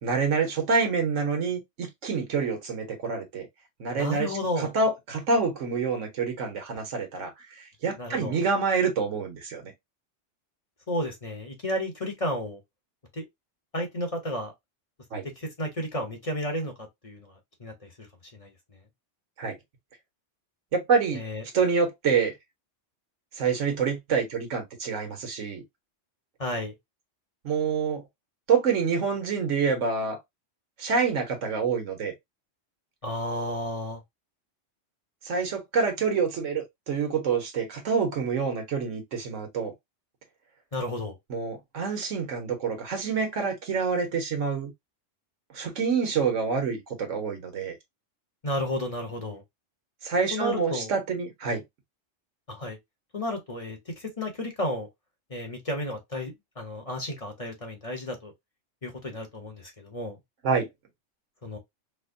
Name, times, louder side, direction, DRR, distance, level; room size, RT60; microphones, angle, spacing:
voice 1, 0.0-3.5 3.8-7.3 7.8-9.7 15.1-15.2 19.4-19.5 20.7-21.2 21.5-22.3 23.4-25.6 27.4-28.0 28.5-30.2 30.8-32.1 35.2-39.7 41.3-44.7 45.5-47.7 50.0-51.6 60.4-60.7, right 5 dB, 90° right, 1.5 m, -27 dB
voice 2, 3.9-4.7 8.0-8.4 10.9-12.6 13.1-13.2 13.7-14.5 15.4-18.1 18.3-18.5 21.1-21.4 26.4-26.7 33.0-34.0 40.7-41.2 48.4-49.4 50.3-50.9 52.5-52.8 53.1-54.9 55.3-58.3 58.8-60.2 61.4-61.6, left 1 dB, 30° left, 1.0 m, -32 dB
4.4 x 2.2 x 2.6 m
omnidirectional pair, 1.3 m